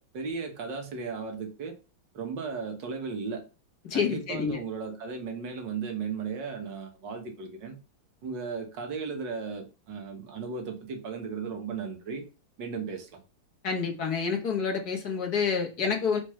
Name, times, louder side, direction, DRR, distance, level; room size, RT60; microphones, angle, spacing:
voice 1, 0.0-1.7 2.1-3.4 3.9-7.8 8.2-12.2 12.6-13.2, right 5 dB, 65° right, 2.1 m, -35 dB
voice 2, 3.9-4.6 13.6-16.2, left 6 dB, 50° left, 2.0 m, -28 dB
5.1 x 4.5 x 5.7 m
omnidirectional pair, 2.2 m